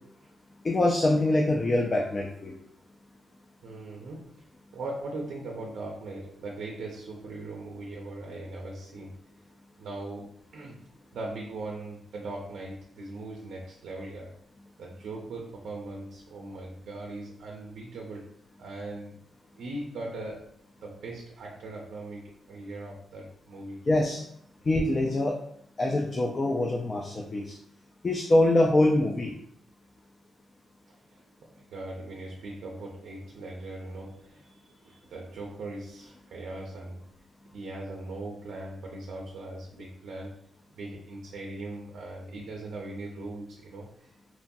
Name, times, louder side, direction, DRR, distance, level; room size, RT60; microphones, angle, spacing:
voice 1, 0.6-2.6 23.9-24.2 24.7-25.4 25.8-27.6 28.0-29.3, left 1 dB, 30° left, 0 dB, 0.3 m, -24 dB
voice 2, 3.6-4.5 4.7-9.2 9.8-10.8 11.1-14.3 14.8-18.3 18.6-19.2 19.6-23.9 30.9-37.1 37.5-40.4 40.7-44.1, right 2 dB, 80° right, -1 dB, 0.4 m, -40 dB
3.0 x 2.2 x 2.6 m, 0.67 s
cardioid pair, 110°, 0 cm